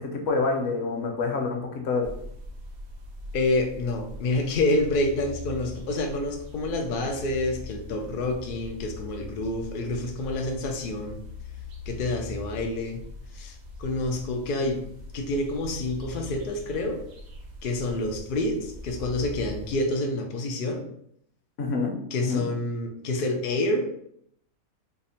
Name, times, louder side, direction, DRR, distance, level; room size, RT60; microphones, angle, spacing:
voice 1, 0.0-2.1 21.6-21.9 22.2-22.4, left 4 dB, 55° left, 1 dB, 0.9 m, -27 dB
sound 1, 2.0-19.8, left 2 dB, 60° right, 0.9 m, -41 dB
voice 2, 3.3-11.2 11.9-13.0 13.3-14.8 15.1-17.0 17.6-20.8 22.1-24.0, left 2 dB, 75° left, 3 dB, 0.5 m, -28 dB
3.4 x 2.0 x 4.1 m, 0.70 s
omnidirectional pair, 1.5 m